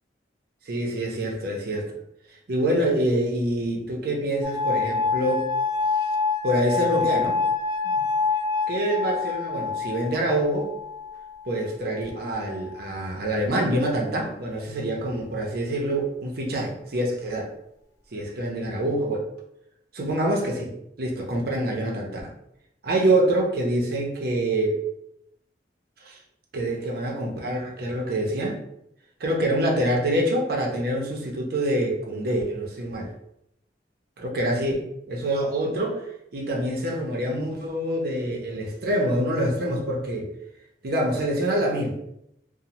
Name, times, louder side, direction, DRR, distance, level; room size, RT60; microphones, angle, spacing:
voice 1, 0.7-1.9 2.5-5.5 6.4-7.4 7.8-8.1 8.7-10.7 11.5-17.5 18.1-19.3 19.9-22.2 22.8-24.8 26.0-26.2 26.5-28.6 29.2-33.1 34.2-40.3 40.8-42.0, right 1 dB, 60° right, 0 dB, 0.5 m, -26 dB
sound 1, 4.4-11.4 12.2-12.8, left 4 dB, 20° left, 0.4 m, -27 dB
2.6 x 2.0 x 2.9 m, 0.78 s
head